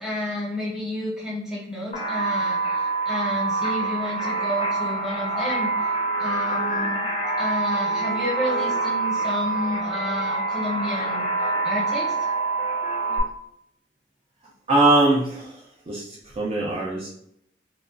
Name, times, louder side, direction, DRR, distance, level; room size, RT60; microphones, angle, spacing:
voice 1, 0.0-5.7 6.2-7.1 7.4-11.3 11.6-12.1, left 1 dB, 5° right, -6 dB, 0.7 m, -30 dB
sound 1, 1.9-13.2, right 3 dB, 30° left, 0.4 m, -26 dB
voice 2, 14.7-15.5 15.9-16.0 16.4-17.1, right 2 dB, 30° right, -4 dB, 0.4 m, -20 dB
2.9 x 2.3 x 2.4 m, 0.72 s
head